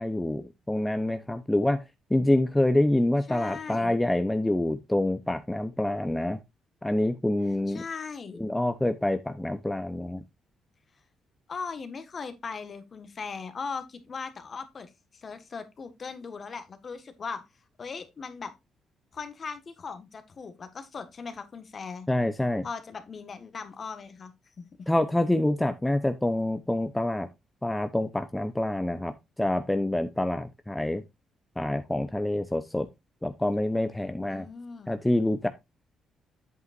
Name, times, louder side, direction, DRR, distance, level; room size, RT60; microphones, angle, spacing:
voice 1, 0.0-1.8 2.1-6.4 6.8-7.8 8.4-10.2 22.1-22.6 24.9-27.3 27.6-31.0 31.6-32.9 33.2-34.5 34.9-35.5, left 1 dB, 10° left, 0.7 m, -26 dB
voice 2, 3.3-4.0 7.7-8.4 11.5-17.4 17.8-18.5 19.1-22.1 22.6-24.3 24.6-24.9 34.3-35.0, left 5 dB, 45° left, 1.5 m, -39 dB
8.1 x 8.0 x 2.5 m
cardioid pair, 90°, 0 cm